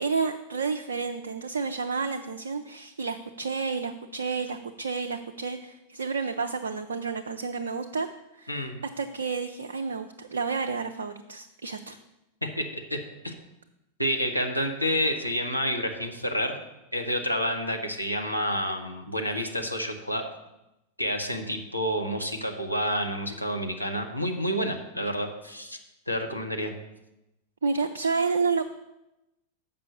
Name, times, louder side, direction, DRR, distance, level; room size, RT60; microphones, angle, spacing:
voice 1, 0.0-8.1 8.4-12.0 27.6-28.6, right 5 dB, 70° right, 6 dB, 0.4 m, -30 dB
voice 2, 8.5-8.8 12.4-13.0 13.2-13.3 14.0-16.6 16.9-20.2 21.0-25.8 26.1-26.7, equal, 90° left, 3 dB, 0.9 m, -29 dB
6.9 x 5.4 x 6.8 m, 0.93 s
figure-of-eight pair, 90°, 0 cm